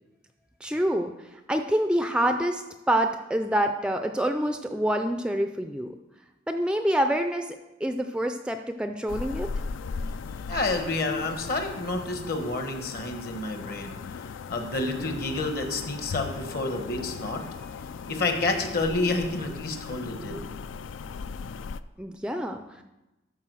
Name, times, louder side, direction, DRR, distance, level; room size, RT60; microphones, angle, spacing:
voice 1, 0.6-6.0 6.5-9.5 22.0-22.8, right 1 dB, 5° right, 6 dB, 0.3 m, -27 dB
sound 1, 9.1-21.8, left 5 dB, 80° left, 0.4 m, -38 dB
voice 2, 10.5-14.0 14.5-17.4 18.1-20.5, left 2 dB, 50° left, 5 dB, 1.2 m, -29 dB
13.0 x 4.7 x 6.2 m, 1.0 s
head